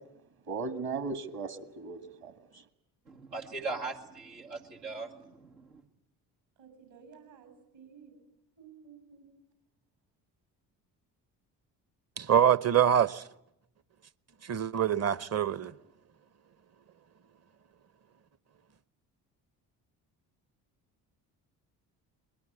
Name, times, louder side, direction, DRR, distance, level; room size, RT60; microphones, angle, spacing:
voice 1, 0.5-2.6, right 4 dB, 45° right, 1.9 m, -37 dB
voice 2, 3.1-5.7, right 3 dB, 85° right, 2.1 m, -39 dB
voice 3, 6.6-8.1 8.6-9.3, right 7 dB, 65° right, 7.6 m, -54 dB
voice 4, 12.2-13.2 14.5-15.7, right 9 dB, 30° right, 0.9 m, -25 dB
22.0 x 21.0 x 9.5 m
hypercardioid pair, 50°, 49 cm